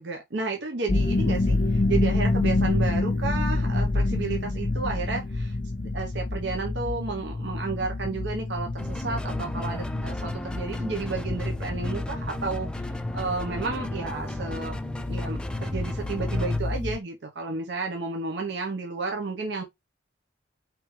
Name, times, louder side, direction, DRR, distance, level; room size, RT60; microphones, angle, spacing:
voice 1, 0.0-5.6 5.9-14.8 15.1-19.6, right 4 dB, 65° right, 0.8 m, -32 dB
sound 1, 0.9-17.0, left 2 dB, 45° left, 0.8 m, -28 dB
sound 2, 8.8-16.6, equal, 5° left, 0.4 m, -36 dB
5.0 x 3.3 x 3.2 m
head